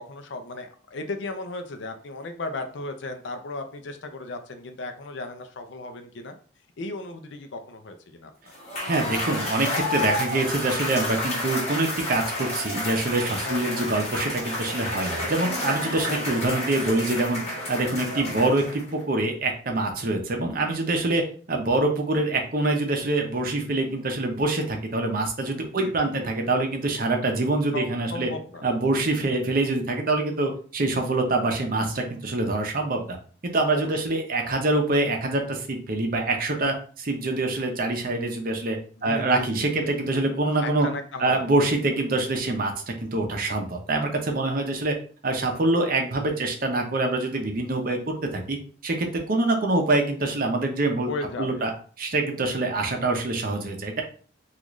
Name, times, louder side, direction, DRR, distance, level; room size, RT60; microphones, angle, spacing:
voice 1, 0.0-6.4 6.8-8.5 13.4-13.9 16.1-16.3 25.7-26.5 27.7-28.6 29.2-29.4 33.7-34.1 39.0-40.1 40.6-41.5 51.1-51.6, left 2 dB, 65° left, 6 dB, 0.5 m, -36 dB
Cheering / Applause / Crowd, 8.5-19.0, left 1 dB, 35° left, 1.2 m, -30 dB
voice 2, 8.8-17.4 17.7-28.3 28.6-33.2 33.4-40.9 41.2-44.9 45.2-48.6 48.8-51.1 51.4-51.7 52.0-54.0, right 2 dB, 45° right, 3 dB, 0.7 m, -25 dB
3.6 x 2.5 x 3.0 m, 0.43 s
head